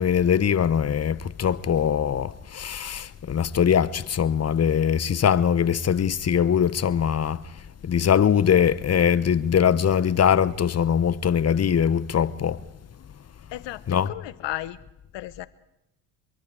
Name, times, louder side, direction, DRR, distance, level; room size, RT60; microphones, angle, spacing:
voice 1, 0.0-7.4 7.8-12.6 13.9-14.1, left 8 dB, 30° left, 0.9 m, -22 dB
voice 2, 13.5-14.8 15.1-15.5, left 15 dB, 60° left, 1.2 m, -34 dB
24.5 x 23.0 x 4.9 m
hypercardioid pair, 65°, 50 cm